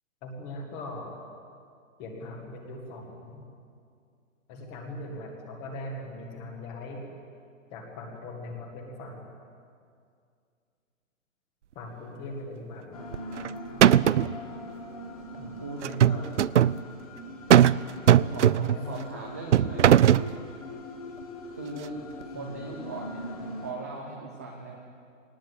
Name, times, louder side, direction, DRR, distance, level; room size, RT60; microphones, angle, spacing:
voice 1, 0.2-1.2 2.0-3.4 4.5-7.0 7.7-9.3 11.7-13.0 15.4-16.3 18.6-19.0 22.3-22.6, left 1 dB, 10° left, 2 dB, 1.5 m, -40 dB
sound 1, 12.9-23.7, left 1 dB, 25° left, 1.8 m, -41 dB
sound 2, 13.1-13.5 13.8-14.3 15.8-16.8 17.5-17.8 18.1-18.8 19.5-20.3, right 10 dB, 60° right, 0.5 m, -18 dB
voice 2, 13.6-14.3 15.6-15.8 16.1-16.2 18.2-20.1 21.6-21.9 22.2-24.8, right 2 dB, 10° right, -2 dB, 0.7 m, -40 dB
20.5 x 19.0 x 8.2 m, 2.3 s
hypercardioid pair, 180°, 40 cm